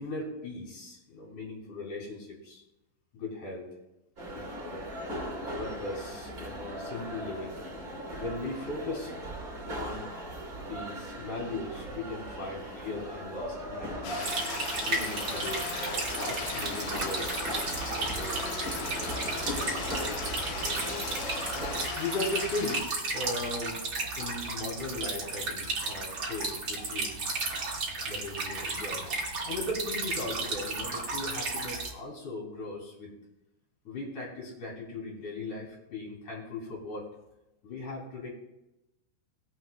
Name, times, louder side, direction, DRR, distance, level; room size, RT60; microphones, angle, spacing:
voice 1, 0.0-2.6 3.1-3.7 4.3-4.9 5.6-7.6 8.2-9.1 9.7-10.1 10.6-14.4 14.8-15.8 16.1-17.3 18.0-18.6 22.0-23.8 24.2-27.2 28.0-29.1 29.4-33.1 33.8-37.1 37.6-38.3, left 2 dB, 40° left, -4 dB, 4.9 m, -38 dB
sound 1, 4.2-21.9, equal, 30° right, 1.7 m, -38 dB
sound 2, 14.0-22.8, left 6 dB, 75° left, 3.5 m, -38 dB
sound 3, 14.2-31.9, right 3 dB, 85° right, 1.0 m, -34 dB
22.0 x 8.2 x 2.3 m, 0.93 s
omnidirectional pair, 5.9 m